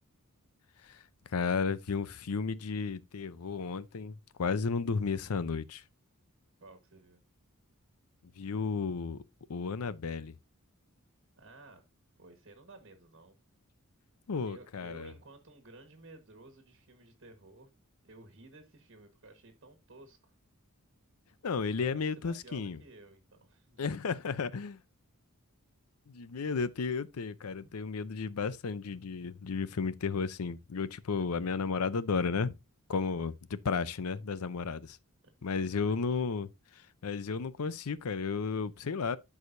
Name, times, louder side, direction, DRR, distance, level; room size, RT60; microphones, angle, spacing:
voice 1, 1.3-5.8 8.4-9.2 9.5-10.3 14.3-15.1 21.4-22.8 23.8-24.8 26.1-32.6 32.9-35.0 35.4-39.2, left 5 dB, 80° left, 0.6 m, -33 dB
voice 2, 6.6-7.2 11.4-11.9 12.2-13.4 14.4-17.7 18.0-20.2 21.7-24.1 27.6-27.7 35.4-36.2, right 2 dB, 55° right, 1.4 m, -55 dB
12.5 x 4.9 x 2.6 m
head